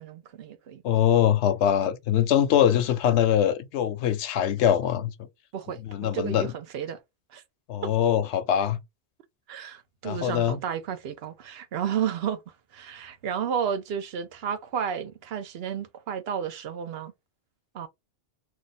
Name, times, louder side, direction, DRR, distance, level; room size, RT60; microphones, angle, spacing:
voice 1, 0.0-0.8 5.5-7.0 7.3-7.4 7.8-7.9 9.5-12.4 12.7-17.1 17.7-17.9, right 8 dB, 65° right, 0.8 m, -32 dB
voice 2, 0.8-5.1 5.8-6.5 7.7-8.8 10.0-10.6, left 10 dB, 80° left, 0.9 m, -23 dB
2.6 x 2.3 x 4.0 m
omnidirectional pair, 1.2 m